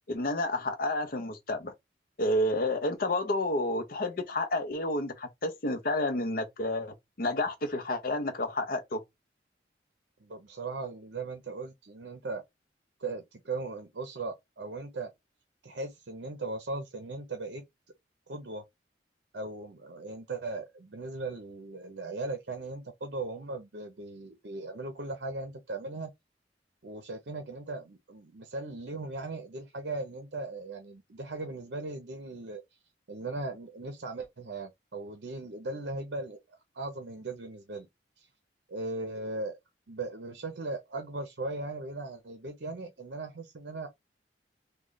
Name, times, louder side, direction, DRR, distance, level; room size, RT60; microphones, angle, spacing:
voice 1, 0.1-1.7 2.2-9.0, left 1 dB, 50° left, 0.6 m, -30 dB
voice 2, 10.2-12.4 13.0-15.1 15.6-17.6 18.3-18.6 19.3-26.1 26.8-32.6 33.1-36.4 36.7-37.9 38.2-38.3 38.7-39.6 39.9-43.9, right 3 dB, 65° right, 0.6 m, -38 dB
3.1 x 2.2 x 3.8 m
head